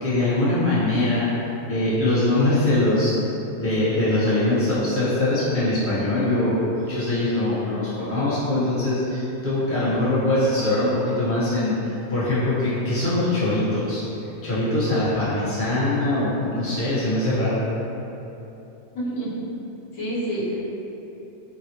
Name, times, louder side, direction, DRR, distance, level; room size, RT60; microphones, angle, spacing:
voice 1, 0.0-1.3 1.7-3.1 3.6-14.0 14.4-17.6, left 1 dB, 15° left, -11 dB, 0.5 m, -22 dB
voice 2, 18.9-19.3 19.9-20.6, right 1 dB, 60° left, -9 dB, 1.1 m, -27 dB
3.9 x 2.0 x 2.8 m, 3.0 s
omnidirectional pair, 1.6 m